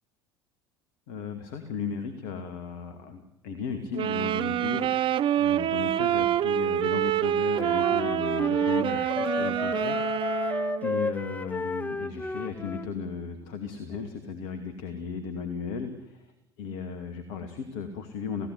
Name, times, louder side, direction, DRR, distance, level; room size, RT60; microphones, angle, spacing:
voice 1, 1.1-10.5 10.8-16.2 16.6-18.5, left 5 dB, 55° left, 8 dB, 2.5 m, -36 dB
sound 1, 3.9-11.0, right 11 dB, 40° right, 0.9 m, -26 dB
Wind instrument woodwind instrument, 7.5-12.9, left 3 dB, 10° left, 1.1 m, -32 dB
29.5 x 16.5 x 9.8 m, 0.97 s
figure-of-eight pair, 65°, 14 cm